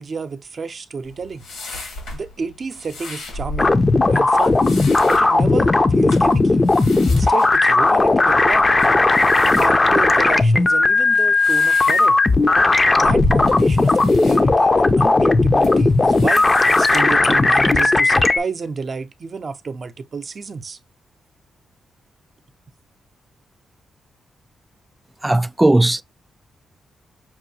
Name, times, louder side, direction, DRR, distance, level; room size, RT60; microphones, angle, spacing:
voice 1, 0.0-1.5 2.1-3.8 4.1-4.6 5.0-6.6 7.1-8.7 9.4-12.2 13.0-20.8, right 5 dB, 50° right, 0.6 m, -30 dB
sound 1, 1.0-18.0, left 1 dB, 85° left, 2.1 m, -36 dB
sound 2, 3.6-18.4, left 3 dB, 30° left, 0.6 m, -16 dB
voice 2, 25.2-26.0, right 1 dB, 15° right, 0.3 m, -16 dB
5.9 x 2.3 x 2.8 m
supercardioid pair, 55°, 0 cm